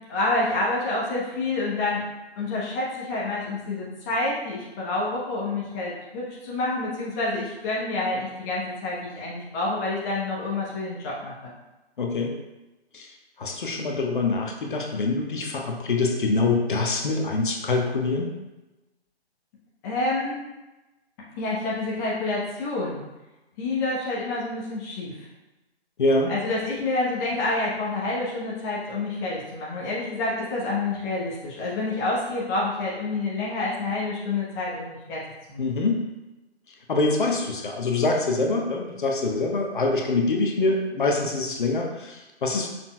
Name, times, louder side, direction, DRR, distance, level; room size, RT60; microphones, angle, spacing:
voice 1, 0.1-2.0 2.4-11.5 19.8-20.4 21.4-23.0 23.6-25.1 26.3-35.2 35.5-35.7, left 2 dB, 15° left, -6 dB, 0.9 m, -28 dB
voice 2, 12.0-12.3 12.9-13.1 13.4-18.3 26.0-26.3 35.6-36.0 36.9-42.7, left 3 dB, 50° left, 1 dB, 1.1 m, -25 dB
7.0 x 6.1 x 2.2 m, 1.0 s
figure-of-eight pair, 140°, 33 cm